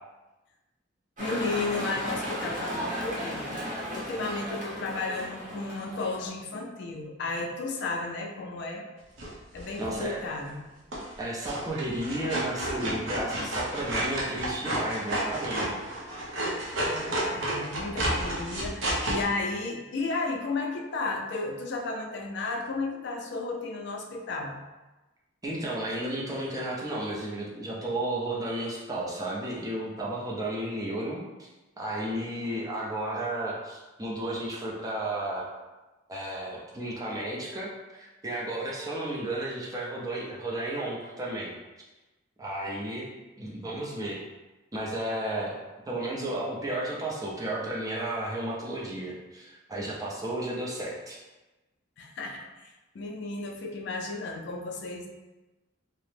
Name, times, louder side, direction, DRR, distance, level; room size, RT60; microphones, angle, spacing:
voice 1, 1.2-3.6 3.9-8.8 9.5-10.6 16.8-24.6 52.0-55.1, left 3 dB, 60° left, 1 dB, 0.4 m, -33 dB
sound 1, 1.2-6.3, equal, 40° right, 0.8 m, -35 dB
sound 2, 9.2-10.0 10.9-11.2 11.5-19.2, right 1 dB, 75° right, 0.7 m, -31 dB
voice 2, 9.8-10.2 11.2-15.8 25.4-31.5 31.8-35.5 36.1-41.5 42.4-43.1 43.4-44.2 44.7-45.6 45.9-51.2, right 1 dB, 20° right, -4 dB, 0.5 m, -33 dB
2.8 x 2.0 x 3.2 m, 1.1 s
head